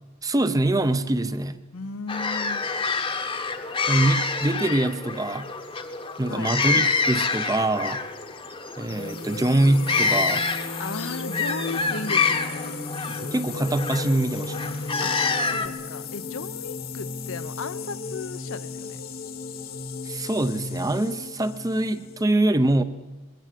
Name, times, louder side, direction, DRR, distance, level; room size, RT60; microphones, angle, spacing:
voice 1, 0.2-1.6 3.9-5.5 6.2-8.0 8.8-10.4 13.1-14.8 20.0-22.8, right 1 dB, 15° right, 12 dB, 0.6 m, -24 dB
voice 2, 1.7-2.7 6.3-6.5 10.8-12.7 15.0-15.2 15.4-19.0, left 4 dB, 65° left, 13 dB, 0.8 m, -35 dB
sound 1, 2.1-15.7, left 4 dB, 25° left, 1.0 m, -27 dB
sound 2, 8.8-22.2, left 3 dB, 40° left, 1.2 m, -35 dB
21.5 x 16.5 x 7.5 m, 1.2 s
head